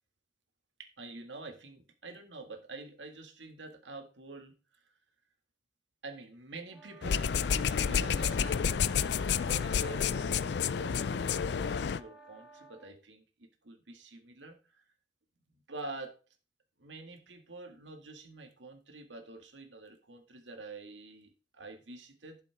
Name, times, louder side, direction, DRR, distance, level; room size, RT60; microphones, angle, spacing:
voice 1, 0.8-4.8 6.0-7.3 7.7-14.8 15.7-16.1 16.8-22.4, right 2 dB, 90° right, 5 dB, 2.0 m, -47 dB
sound 1, 6.7-12.9, right 3 dB, 5° right, 1.1 m, -55 dB
sound 2, 7.0-12.0, left 7 dB, 65° left, 0.4 m, -30 dB
11.5 x 7.5 x 3.5 m, 0.34 s
head